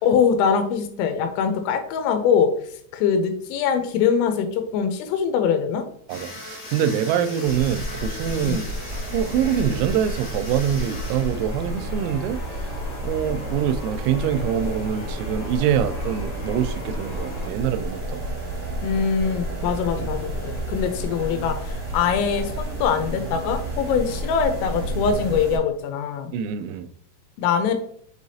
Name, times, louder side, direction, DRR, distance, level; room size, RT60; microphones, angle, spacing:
voice 1, 0.0-2.5 2.9-5.8 8.4-8.6 18.8-26.3 27.4-27.7, left 7 dB, 85° left, 7 dB, 3.4 m, -23 dB
sound 1, 6.1-12.1, left 2 dB, 30° left, 1.7 m, -38 dB
voice 2, 6.1-8.7 8.9-12.4 13.0-18.3 26.3-26.9, right 9 dB, 85° right, 12 dB, 3.2 m, -25 dB
sound 2, 7.4-25.6, right 1 dB, 40° right, 1.0 m, -31 dB
Church bell, 10.2-17.5, left 2 dB, 65° left, 2.9 m, -39 dB
7.0 x 5.0 x 2.7 m, 0.65 s
omnidirectional pair, 5.9 m